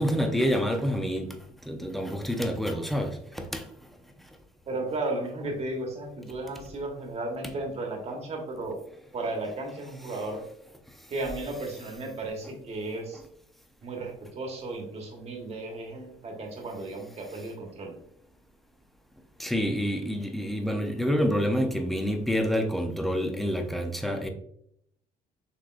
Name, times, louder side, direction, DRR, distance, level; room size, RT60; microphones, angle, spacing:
voice 1, 0.0-1.4 1.7-3.6 19.4-24.3, equal, ahead, 0.6 m, -27 dB
voice 2, 4.7-8.8 9.1-10.4 11.1-13.2 13.8-17.9, right 2 dB, 40° right, 1.4 m, -34 dB
6.0 x 3.3 x 2.5 m
cardioid pair, 110°, 17 cm